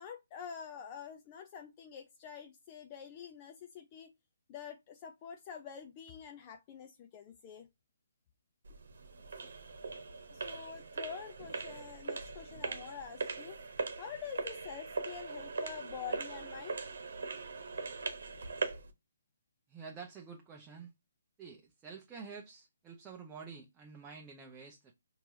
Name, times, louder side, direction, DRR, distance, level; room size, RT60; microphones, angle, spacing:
voice 1, 0.0-4.1 4.5-7.7 10.3-16.9, left 7 dB, 30° left, 0.4 m, -47 dB
sound 1, 8.6-18.9, right 4 dB, 65° right, 1.0 m, -40 dB
voice 2, 19.7-20.9 21.4-24.9, right 5 dB, 15° right, 0.6 m, -49 dB
4.4 x 3.0 x 2.7 m
figure-of-eight pair, 145°, 0 cm